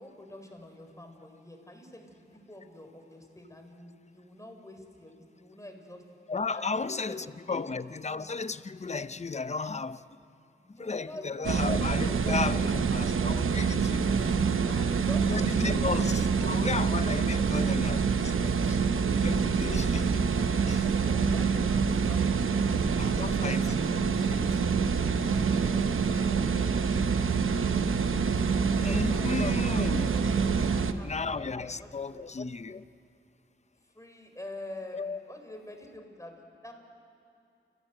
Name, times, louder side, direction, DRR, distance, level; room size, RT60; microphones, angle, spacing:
voice 1, 0.0-6.0 6.5-7.6 10.6-12.1 12.6-12.9 14.6-16.5 17.3-17.7 19.8-23.9 24.6-25.4 25.7-26.8 27.3-27.5 28.5-29.3 29.6-30.2 30.7-31.3 31.6-32.3 33.9-36.7, left 1 dB, 15° left, 4.4 m, -47 dB
voice 2, 6.3-10.1 10.8-14.4 15.3-18.8 19.2-20.3 20.7-20.9 22.7-24.4 28.8-30.2 31.0-32.8 34.9-35.2, left 4 dB, 35° left, 0.7 m, -34 dB
sound 1, 11.4-30.9, right 5 dB, 90° right, 0.9 m, -26 dB
29.5 x 16.5 x 7.8 m
cardioid pair, 55°, 20 cm